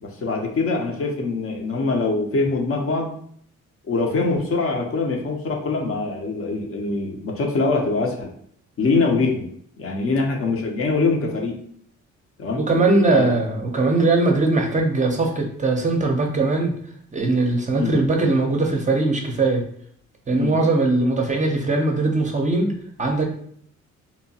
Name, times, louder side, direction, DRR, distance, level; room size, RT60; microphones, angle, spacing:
voice 1, 0.0-3.1 3.9-8.3 8.8-9.4 9.8-11.6 12.4-12.6 13.1-13.3 17.7-17.9 20.4-20.5, left 3 dB, 50° left, 2 dB, 0.6 m, -23 dB
voice 2, 12.6-16.7 17.1-19.6 20.3-22.7 23.0-23.2, right 2 dB, 25° right, 1 dB, 0.5 m, -20 dB
2.8 x 2.2 x 2.7 m, 0.63 s
cardioid pair, 90°, 30 cm